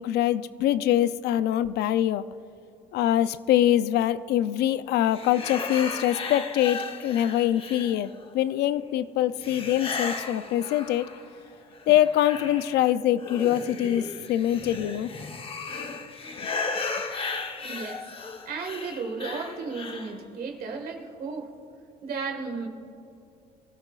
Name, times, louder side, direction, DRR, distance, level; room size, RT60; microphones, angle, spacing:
voice 1, 0.0-2.3 2.9-11.1 11.9-15.1, left 12 dB, 75° left, 14 dB, 0.5 m, -24 dB
sound 1, 5.1-8.3 9.4-11.4 11.7-20.2, left 4 dB, 35° left, 1.0 m, -35 dB
voice 2, 17.6-18.1 18.5-21.5 22.0-22.7, right 4 dB, 60° right, 3 dB, 1.8 m, -34 dB
24.0 x 13.5 x 2.5 m, 2.8 s
cardioid pair, 110°, 17 cm